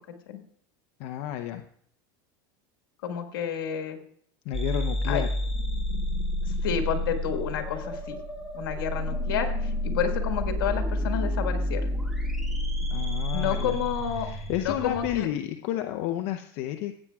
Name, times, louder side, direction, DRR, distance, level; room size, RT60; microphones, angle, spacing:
voice 1, 1.0-1.6 4.5-5.3 12.9-13.8 14.2-17.0, left 12 dB, 65° left, 6 dB, 0.7 m, -31 dB
voice 2, 3.0-4.0 5.1-5.2 6.4-8.2 8.5-11.9 13.3-14.3 14.6-15.3, left 8 dB, 85° left, 5 dB, 1.7 m, -30 dB
sound 1, 4.5-15.2, left 1 dB, ahead, 2.3 m, -29 dB
16.0 x 8.7 x 2.3 m, 0.64 s
supercardioid pair, 120°, 12 cm